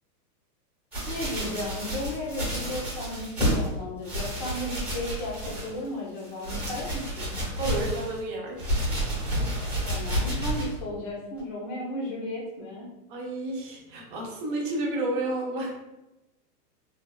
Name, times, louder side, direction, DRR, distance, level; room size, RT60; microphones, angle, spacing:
sound 1, 0.9-3.7 4.0-5.9 6.2-8.2 8.6-10.8 11.4-11.5, equal, 5° right, 0.8 m, -30 dB
voice 1, 1.1-7.4 9.8-12.9, left 1 dB, 30° left, -3 dB, 0.6 m, -35 dB
voice 2, 7.6-8.6 13.1-15.7, right 2 dB, 35° right, -1 dB, 0.6 m, -31 dB
3.3 x 2.3 x 2.2 m, 0.97 s
supercardioid pair, 160°, 47 cm